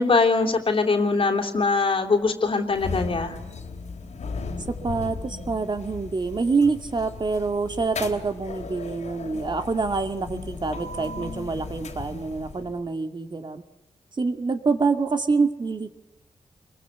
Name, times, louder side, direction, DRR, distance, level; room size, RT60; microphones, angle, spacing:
voice 1, 0.0-3.4, left 4 dB, 50° left, 5 dB, 3.3 m, -22 dB
sound 1, 2.7-12.9, left 4 dB, 80° left, 3.5 m, -36 dB
voice 2, 4.7-13.6 14.2-15.9, right 4 dB, 40° right, 7 dB, 2.1 m, -26 dB
26.5 x 22.5 x 8.2 m, 0.96 s
wide cardioid pair, 100°, 12 cm